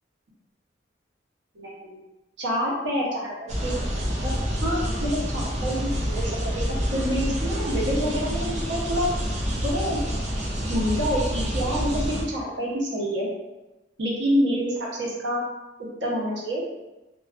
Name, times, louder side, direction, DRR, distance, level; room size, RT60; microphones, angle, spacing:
voice 1, 1.5-2.0 2.4-3.7 4.2-4.3 4.6-6.6 6.9-9.1 9.6-10.0 10.7-13.3 14.0-15.4 16.0-16.7, equal, 75° right, -4 dB, 0.7 m, -27 dB
sound 1, 3.5-12.2, equal, 35° right, 0.4 m, -27 dB
2.4 x 2.3 x 2.4 m, 1.0 s
head